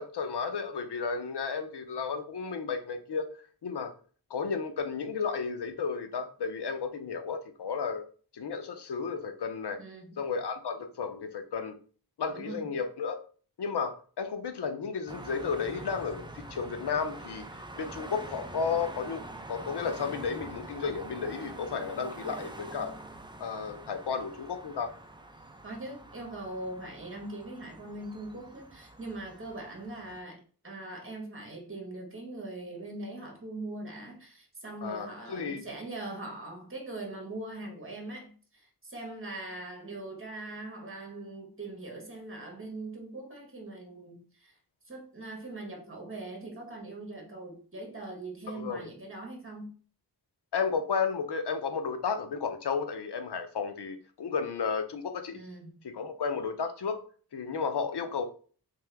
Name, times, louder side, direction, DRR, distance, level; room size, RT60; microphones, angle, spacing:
voice 1, 0.0-3.3 3.6-3.9 4.3-8.1 8.3-9.8 10.2-11.8 12.2-13.2 13.6-17.5 17.8-19.2 19.5-23.0 23.4-24.9 34.8-35.6 48.5-48.9 50.5-55.4 55.9-57.0 57.3-58.2, left 5 dB, 85° left, 0.6 m, -33 dB
voice 2, 9.8-10.2 12.3-12.7 25.6-44.5 44.9-49.7 55.3-55.7, right 2 dB, 30° right, 1.4 m, -41 dB
sound 1, 15.1-30.2, right 2 dB, 10° right, 0.6 m, -45 dB
3.4 x 3.3 x 3.4 m
wide cardioid pair, 60°, 39 cm